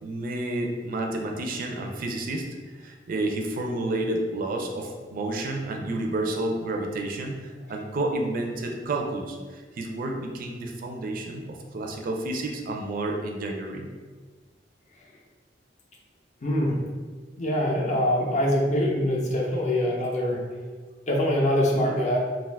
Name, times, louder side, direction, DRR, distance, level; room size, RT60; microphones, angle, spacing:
voice 1, 0.0-2.5 2.8-13.9, right 2 dB, 50° right, 2 dB, 0.4 m, -30 dB
voice 2, 16.4-16.8 17.4-20.4 21.1-22.2, left 1 dB, 40° left, -1 dB, 0.5 m, -24 dB
2.4 x 2.3 x 3.3 m, 1.4 s
head